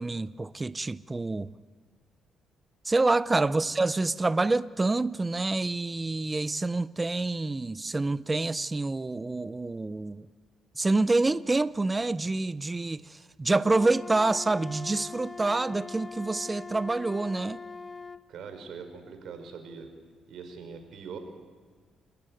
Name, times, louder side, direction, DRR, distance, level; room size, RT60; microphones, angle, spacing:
voice 1, 0.0-1.5 2.8-10.3 10.8-17.6, right 2 dB, 20° right, 0.6 m, -27 dB
Wind instrument woodwind instrument, 13.6-18.2, left 4 dB, 25° left, 1.1 m, -42 dB
voice 2, 18.3-19.9 20.3-21.2, right 6 dB, 70° right, 4.4 m, -42 dB
28.5 x 14.0 x 9.3 m
cardioid pair, 90°, 0 cm